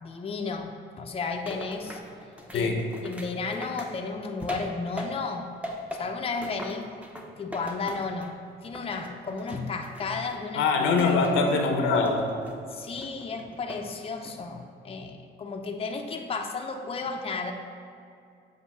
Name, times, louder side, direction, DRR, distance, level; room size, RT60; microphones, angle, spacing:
voice 1, 0.0-2.0 2.5-2.7 3.0-5.5 5.9-7.0 7.4-8.3 8.6-11.2 12.7-17.5, left 4 dB, 30° left, 3 dB, 0.6 m, -33 dB
sound 1, 1.5-5.4 5.6-8.4 8.7-10.4 11.0-11.6 11.9-12.6 13.0-13.9 14.3-14.7, left 1 dB, 5° right, 0.8 m, -40 dB
voice 2, 2.5-2.8 10.5-12.3, left 4 dB, 90° left, 3 dB, 0.8 m, -23 dB
8.2 x 2.7 x 6.0 m, 2.5 s
cardioid pair, 90°, 20 cm